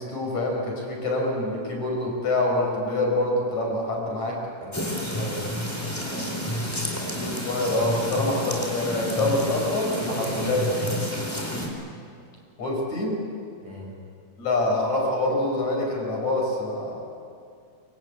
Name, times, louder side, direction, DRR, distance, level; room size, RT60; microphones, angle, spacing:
voice 1, 0.0-4.4 7.2-10.6 12.6-13.2 14.4-17.0, left 2 dB, 45° left, 0 dB, 7.3 m, -26 dB
voice 2, 4.6-7.4 10.0-10.9 13.6-14.0, right 2 dB, 65° right, -1 dB, 8.2 m, -37 dB
sound 1, 4.7-11.7, left 1 dB, 5° left, 4.2 m, -30 dB
26.0 x 25.5 x 8.6 m, 2.4 s
omnidirectional pair, 4.4 m